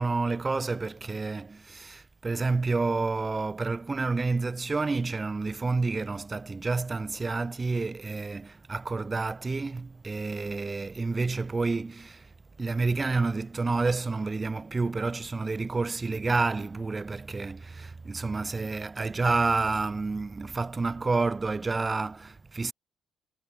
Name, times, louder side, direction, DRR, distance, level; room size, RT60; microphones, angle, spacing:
voice 1, 0.0-12.3 12.6-22.7, right 3 dB, 25° right, 4.3 m, -29 dB
cardioid pair, 90°, 0 cm